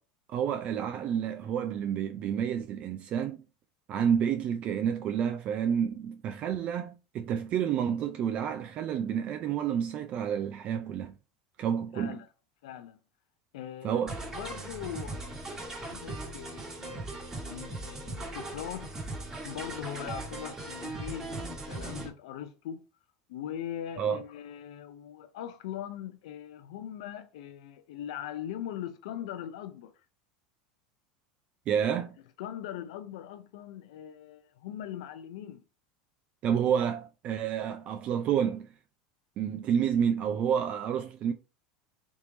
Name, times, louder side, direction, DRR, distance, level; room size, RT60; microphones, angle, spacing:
voice 1, 0.3-3.4 3.9-11.1 11.6-12.2 13.8-14.1 24.0-24.2 31.7-32.2 36.4-38.7 39.4-41.3, right 8 dB, 40° right, 0.3 m, -29 dB
voice 2, 11.9-12.3 12.6-13.0 13.5-14.1 14.3-17.0 17.4-19.0 19.4-22.8 23.3-29.9 31.8-31.9 32.4-35.6, left 10 dB, 80° left, 0.4 m, -41 dB
sound 1, 14.1-22.1, right 2 dB, 15° right, 1.2 m, -39 dB
3.6 x 3.0 x 3.8 m
supercardioid pair, 145°, 4 cm